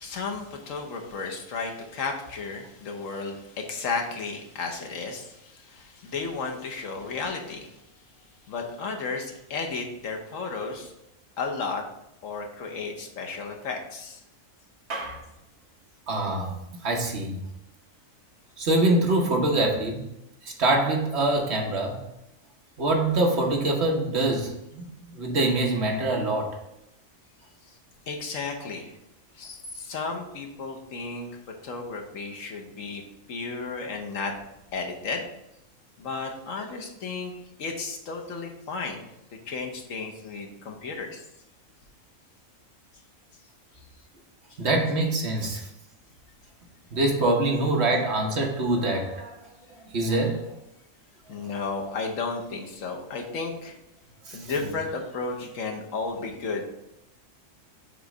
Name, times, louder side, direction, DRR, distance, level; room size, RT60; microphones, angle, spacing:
voice 1, 0.0-7.8 8.5-10.9 11.4-11.8 12.2-14.2 28.1-28.9 29.3-31.3 31.6-33.0 33.3-34.3 34.7-35.3 36.0-37.3 37.6-39.0 39.5-41.2 44.5-44.6 51.3-53.8 54.3-56.6, left 4 dB, 70° left, 2 dB, 1.3 m, -33 dB
voice 2, 14.9-15.2 16.1-16.5 16.8-17.4 18.6-20.1 20.4-22.0 22.8-26.6 44.6-45.7 46.9-49.4 49.9-50.5 54.3-54.5, right 2 dB, 55° right, 1 dB, 1.3 m, -25 dB
7.2 x 3.1 x 4.8 m, 0.86 s
omnidirectional pair, 1.4 m